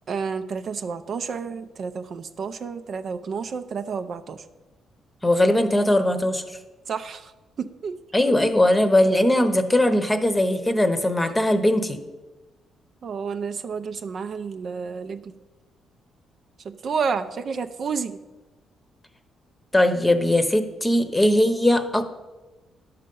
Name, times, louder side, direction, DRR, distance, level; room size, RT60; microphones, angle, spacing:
voice 1, 0.1-4.4 6.9-7.3 7.6-8.0 13.0-15.3 16.6-18.2, right 5 dB, 55° right, 9 dB, 0.5 m, -30 dB
voice 2, 5.2-6.4 8.1-12.0 19.7-22.0, left 1 dB, 15° left, 9 dB, 0.9 m, -20 dB
10.5 x 6.6 x 5.4 m, 1.1 s
cardioid pair, 90°, 0 cm